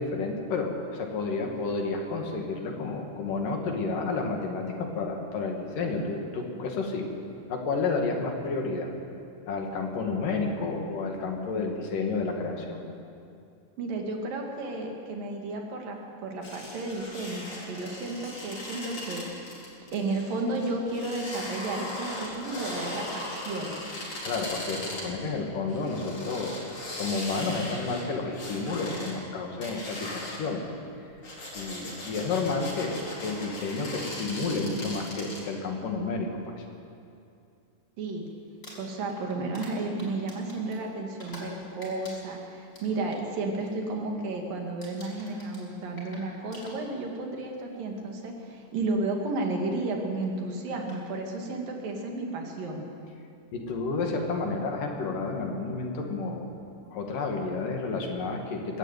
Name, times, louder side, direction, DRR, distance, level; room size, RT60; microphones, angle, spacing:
voice 1, 0.0-7.1 7.5-8.9 9.5-12.8 24.3-26.6 27.0-30.8 31.6-36.6 53.5-56.5 56.9-58.8, left 3 dB, 75° left, 2 dB, 3.9 m, -31 dB
voice 2, 13.8-19.2 19.9-23.8 38.0-38.2 38.8-52.9, right 2 dB, 80° right, 1 dB, 4.0 m, -32 dB
sound 1, 16.4-25.3 25.7-29.1 29.6-30.5 31.1-35.4, left 1 dB, 40° left, 5.0 m, -38 dB
Crumpling crinkling, 38.5-41.5 41.8-43.2 43.6-43.9 44.2-44.5 44.8-47.2 48.1-48.2 50.2-50.3 50.7-51.0, left 1 dB, 20° left, 6.1 m, -48 dB
22.5 x 13.5 x 9.1 m, 2.5 s
omnidirectional pair, 3.9 m